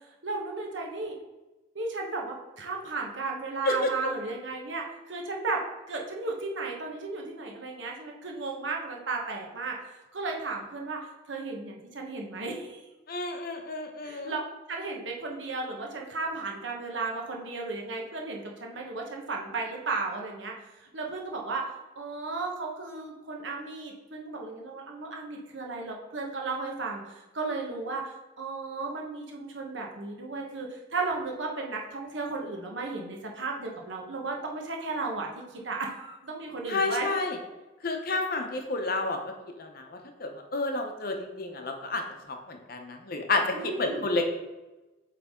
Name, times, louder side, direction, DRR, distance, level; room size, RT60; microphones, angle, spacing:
voice 1, 0.2-1.1 1.7-5.6 5.9-9.8 10.1-12.9 14.0-14.4 14.7-20.5 20.8-37.1 43.5-44.1, right 3 dB, 70° right, 0 dB, 1.1 m, -34 dB
voice 2, 13.1-14.3 36.7-37.4 37.8-39.2 39.6-42.0 42.3-44.3, left 2 dB, 50° left, 4 dB, 0.7 m, -30 dB
7.9 x 3.3 x 3.6 m, 1.1 s
head